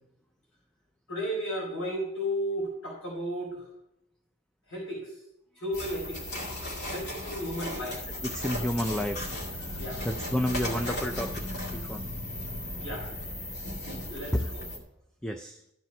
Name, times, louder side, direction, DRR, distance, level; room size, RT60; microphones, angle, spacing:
voice 1, 1.1-3.6 4.7-5.1 5.6-6.3 6.9-8.0 9.8-10.0 12.8-13.1 14.1-14.6, equal, 75° left, -5 dB, 3.7 m, -34 dB
sound 1, 5.7-14.8, left 1 dB, 50° left, 2.2 m, -36 dB
voice 2, 8.2-9.3 9.6-9.7 10.0-12.0 14.3-14.5 15.2-15.6, equal, 5° left, 5 dB, 0.4 m, -31 dB
13.5 x 4.6 x 5.3 m, 0.83 s
head